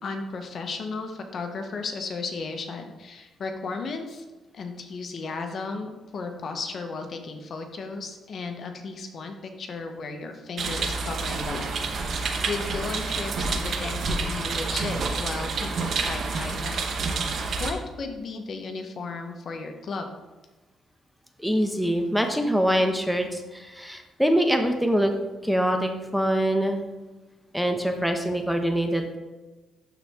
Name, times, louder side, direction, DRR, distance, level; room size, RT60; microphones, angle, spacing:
voice 1, 0.0-4.2 4.5-20.1, left 4 dB, 55° left, 5 dB, 1.1 m, -35 dB
sound 1, 10.6-17.7, right 4 dB, 55° right, 1.0 m, -28 dB
voice 2, 21.4-25.1 25.4-26.8 27.5-29.2, equal, ahead, 4 dB, 0.9 m, -24 dB
12.0 x 4.2 x 3.6 m, 1.2 s
cardioid pair, 90°, 0 cm